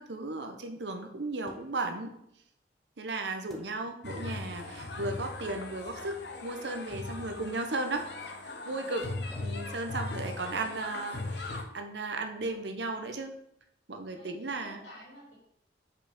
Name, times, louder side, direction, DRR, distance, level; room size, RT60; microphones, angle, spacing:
voice 1, 0.0-2.1 3.0-8.1 8.4-9.1 9.4-13.3 13.9-14.8, right 2 dB, 70° right, 5 dB, 0.9 m, -35 dB
sound 1, 1.5-2.0 3.5-4.1 5.4-6.0 7.2-7.8 9.3-10.3, equal, ahead, 0.8 m, -54 dB
sound 2, 4.0-11.6, left 2 dB, 65° left, 0.8 m, -39 dB
voice 2, 6.8-7.3 8.6-8.9 14.1-15.3, equal, 85° left, -6 dB, 2.9 m, -53 dB
5.4 x 4.8 x 5.1 m, 0.75 s
head